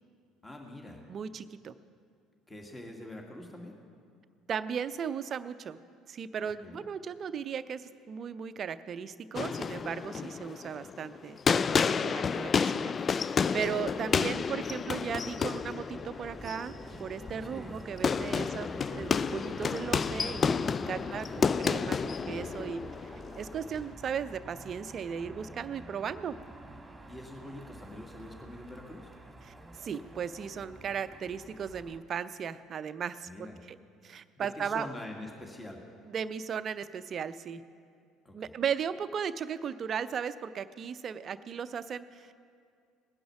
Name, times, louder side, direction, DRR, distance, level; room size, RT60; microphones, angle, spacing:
voice 1, 0.4-1.1 2.5-3.7 6.4-6.9 17.4-17.8 18.5-18.8 20.8-21.5 27.1-29.1 33.3-33.6 34.3-35.9 38.2-38.5, left 1 dB, 15° left, 1 dB, 2.1 m, -45 dB
voice 2, 1.1-1.7 4.5-5.8 6.1-11.4 11.7-16.7 17.0-23.1 23.4-26.4 29.4-33.8 34.0-34.9 36.0-37.6 38.3-42.4, right 7 dB, 40° right, 13 dB, 0.5 m, -36 dB
sound 1, 9.4-23.9, left 6 dB, 35° left, 0.3 m, -31 dB
Motor vehicle (road), 13.5-32.0, right 2 dB, 15° right, 1.6 m, -48 dB
18.0 x 10.0 x 5.9 m, 2.3 s
figure-of-eight pair, 55°, 0 cm